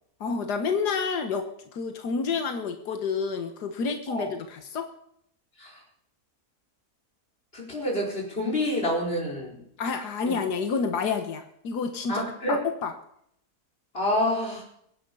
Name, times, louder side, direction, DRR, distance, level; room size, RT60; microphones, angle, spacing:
voice 1, 0.2-1.5 1.7-4.9 9.8-12.9, left 5 dB, 90° left, 7 dB, 1.8 m, -29 dB
voice 2, 7.5-9.6 10.2-10.3 12.1-12.6 13.9-14.6, left 1 dB, 35° left, -2 dB, 5.1 m, -28 dB
23.5 x 10.0 x 5.5 m, 0.71 s
omnidirectional pair, 1.7 m